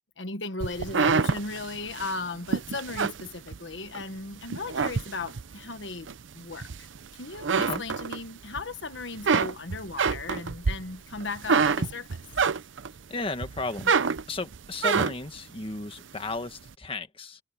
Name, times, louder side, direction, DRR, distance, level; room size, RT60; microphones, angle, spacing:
voice 1, 0.2-6.9 7.1-12.2, left 3 dB, 75° left, 1.4 m, -36 dB
sound 1, 0.6-4.0 4.4-5.5 6.1-7.1 7.3-8.6 8.9-13.0 13.4-15.4, right 5 dB, 85° right, 0.7 m, -27 dB
voice 2, 13.1-13.9 14.3-17.4, left 2 dB, 30° left, 1.6 m, -34 dB
head